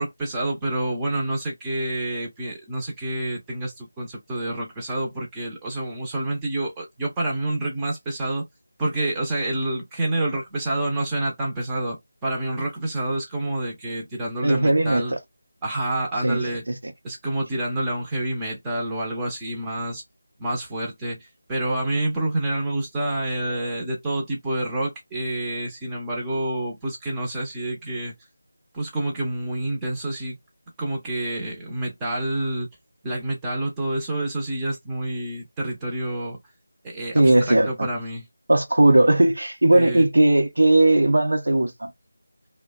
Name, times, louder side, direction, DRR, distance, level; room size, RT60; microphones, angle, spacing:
voice 1, 0.0-8.5 8.8-15.2 15.6-16.6 17.0-20.0 20.4-28.1 28.7-30.4 30.8-32.7 33.0-36.4 36.8-38.3 39.7-40.1, right 1 dB, 10° right, 0.7 m, -28 dB
voice 2, 14.4-15.2 16.2-16.4 16.7-16.8 37.1-37.9 38.5-41.9, right 2 dB, 75° right, 0.8 m, -18 dB
2.5 x 2.1 x 2.3 m
figure-of-eight pair, 165°, 0 cm